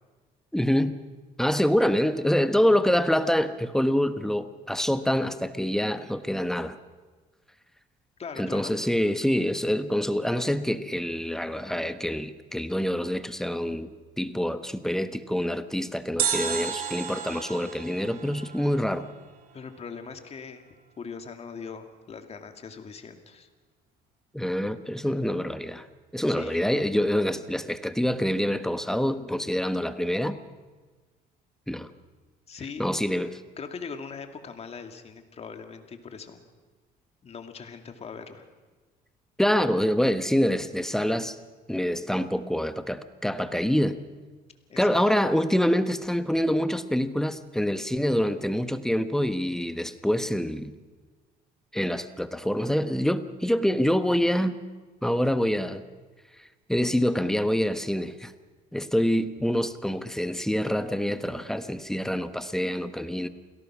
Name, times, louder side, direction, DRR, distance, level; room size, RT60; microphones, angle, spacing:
voice 1, 0.5-1.0 1.4-6.8 8.4-13.9 14.2-19.1 24.3-25.9 26.1-30.4 31.7-31.9 32.8-33.4 39.4-41.4 41.7-44.0 44.8-50.7 51.7-54.6 55.0-55.8 56.4-58.3 58.7-63.3, equal, 5° left, 10 dB, 1.1 m, -26 dB
voice 2, 8.2-8.7 19.5-20.6 21.0-23.5 26.3-26.6 32.5-33.1 33.6-36.4 37.2-38.4 44.7-45.0, left 5 dB, 40° left, 6 dB, 2.4 m, -41 dB
sound 1, 16.2-19.3 19.5-19.6, right 7 dB, 60° right, 2.2 m, -32 dB
28.0 x 17.5 x 6.2 m, 1.4 s
cardioid pair, 110°, 17 cm